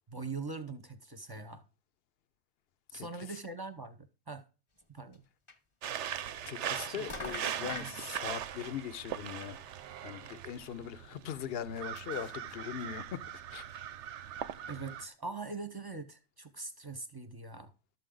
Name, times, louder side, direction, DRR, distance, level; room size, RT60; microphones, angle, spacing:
voice 1, 0.1-1.6 2.9-4.4 4.9-5.2 6.9-7.1 7.8-7.9 14.7-17.7, right 4 dB, 20° right, 0.6 m, -42 dB
voice 2, 2.9-3.3 6.4-9.6 10.0-13.2 13.5-13.6, left 9 dB, 55° left, 0.7 m, -40 dB
sound 1, 5.1-5.2 5.5-5.6 6.6-6.8 7.1-8.0 9.5-9.6 10.0-10.1 10.3-10.4 11.4-12.9 13.3-13.4 13.7-13.8, left 2 dB, 25° left, 0.8 m, -44 dB
sound 2, 5.8-15.1, right 10 dB, 60° right, 0.7 m, -40 dB
sound 3, 8.4-11.0, right 10 dB, 90° right, 1.3 m, -53 dB
12.0 x 7.6 x 3.8 m
omnidirectional pair, 1.7 m